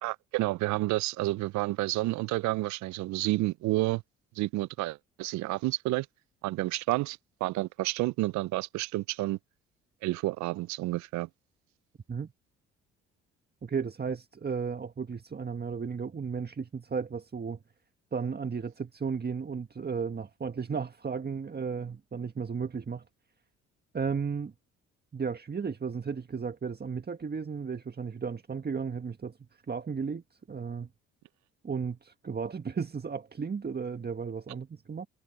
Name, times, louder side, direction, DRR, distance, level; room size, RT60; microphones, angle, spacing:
voice 1, 0.0-4.0 4.4-6.1 6.4-9.4 10.0-11.3, right 19 dB, 65° right, 0.6 m, -30 dB
voice 2, 13.6-17.6 18.1-23.0 23.9-24.5 25.1-29.3 29.7-30.2 30.5-30.9 31.6-35.1, right 5 dB, 30° right, 1.7 m, -34 dB
hypercardioid pair, 50°, 31 cm